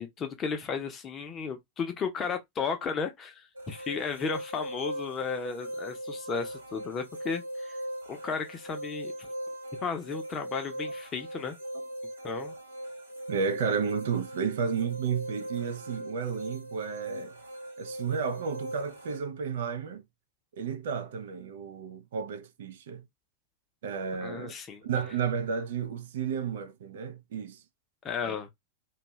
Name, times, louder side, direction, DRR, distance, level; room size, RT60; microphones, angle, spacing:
voice 1, 0.0-7.8 8.1-9.1 9.8-11.6 12.2-12.5 24.2-24.8 28.0-28.5, left 5 dB, 25° left, 0.7 m, -34 dB
sound 1, 3.6-19.2, right 1 dB, 75° right, 0.9 m, -40 dB
voice 2, 13.3-17.3 17.8-20.0 20.5-23.0 23.8-24.5 24.8-27.6 28.2-28.4, right 6 dB, 60° right, 0.5 m, -32 dB
2.5 x 2.3 x 3.1 m
figure-of-eight pair, 90°, 0 cm